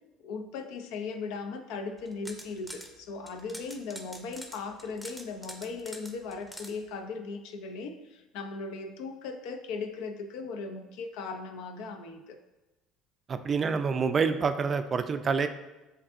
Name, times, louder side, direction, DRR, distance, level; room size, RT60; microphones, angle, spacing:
voice 1, 0.2-12.4, left 4 dB, 75° left, 7 dB, 0.5 m, -38 dB
sound 1, 2.0-2.9 3.3-6.7, equal, ahead, 0.6 m, -44 dB
voice 2, 13.3-15.5, right 5 dB, 35° right, 9 dB, 0.3 m, -27 dB
7.4 x 2.6 x 2.5 m, 1.1 s
supercardioid pair, 90°, 0 cm